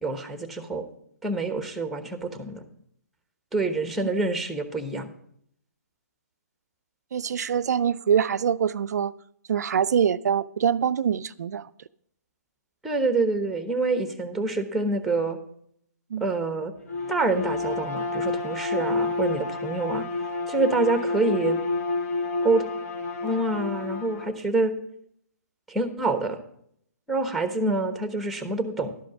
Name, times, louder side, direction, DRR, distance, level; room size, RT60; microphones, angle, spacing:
voice 1, 0.0-0.9 1.2-2.7 3.5-5.1 12.8-15.4 16.2-16.7 17.1-20.0 20.5-21.6 22.4-22.7 23.2-24.7 25.7-26.4 27.1-28.9, right 3 dB, ahead, 1.0 m, -26 dB
voice 2, 7.1-9.1 9.5-11.7 16.1-16.3, right 8 dB, 75° right, 0.4 m, -24 dB
Bowed string instrument, 16.8-24.4, left 3 dB, 60° left, 1.4 m, -29 dB
12.0 x 5.1 x 7.1 m
hypercardioid pair, 140°, 9 cm